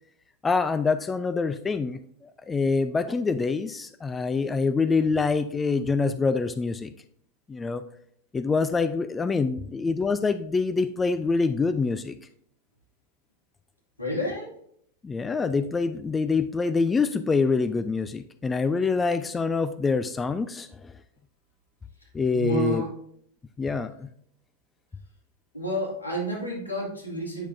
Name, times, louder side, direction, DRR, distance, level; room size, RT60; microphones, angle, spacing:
voice 1, 0.4-6.9 7.5-7.8 8.3-12.2 15.0-21.0 22.1-22.8 23.6-24.1, left 4 dB, 15° left, 11 dB, 0.3 m, -25 dB
voice 2, 14.0-14.5 22.3-22.9 23.6-23.7 25.5-27.5, equal, 80° left, -3 dB, 2.1 m, -29 dB
8.0 x 6.0 x 2.6 m, 0.66 s
figure-of-eight pair, 90°, 0 cm